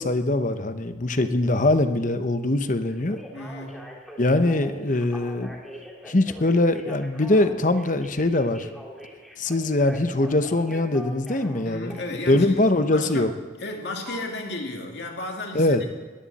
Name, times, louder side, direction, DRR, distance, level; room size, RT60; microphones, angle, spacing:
voice 1, 0.0-3.2 4.2-5.5 6.1-8.7 9.4-11.9 12.3-13.3 15.5-15.8, left 2 dB, 45° left, 9 dB, 1.0 m, -22 dB
Telephone, 2.9-12.5 14.1-14.2, equal, ahead, 2.5 m, -42 dB
voice 2, 3.3-3.8 11.6-13.3 13.6-15.9, left 2 dB, 60° left, 1 dB, 2.6 m, -34 dB
20.5 x 15.0 x 4.3 m, 1.4 s
head